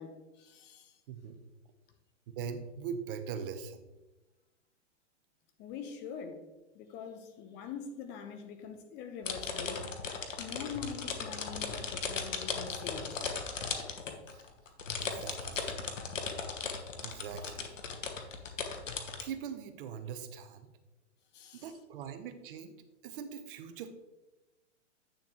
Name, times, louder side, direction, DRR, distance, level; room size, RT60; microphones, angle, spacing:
voice 1, 0.0-1.0 5.6-6.5 6.7-10.1 10.4-13.4 21.3-21.7, left 6 dB, 30° left, 0.9 m, -44 dB
voice 2, 2.4-3.9 14.3-14.5 15.0-15.7 17.0-17.8 19.2-20.7 21.5-22.7 23.0-23.9, right 7 dB, 45° right, 0.9 m, -41 dB
sound 1, 9.2-19.2, left 5 dB, 85° left, 1.3 m, -37 dB
9.0 x 6.9 x 3.1 m
hypercardioid pair, 120°, 37 cm